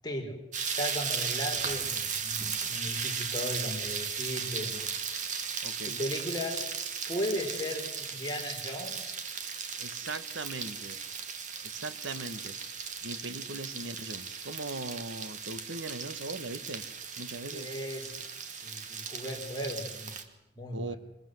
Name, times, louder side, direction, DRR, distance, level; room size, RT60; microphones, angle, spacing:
voice 1, 0.0-0.4 0.7-4.9 5.9-6.6 7.1-7.8 8.1-9.2 17.5-18.1 18.5-20.2 20.6-21.0, left 1 dB, 20° left, 1 dB, 4.3 m, -36 dB
sound 1, 0.5-20.2, right 6 dB, 40° right, 2.3 m, -36 dB
voice 2, 5.6-6.0 9.8-11.0 11.6-12.6 13.0-16.8 17.2-17.7 20.7-20.9, right 2 dB, 85° right, 12 dB, 1.6 m, -39 dB
25.5 x 21.5 x 7.9 m, 0.89 s
head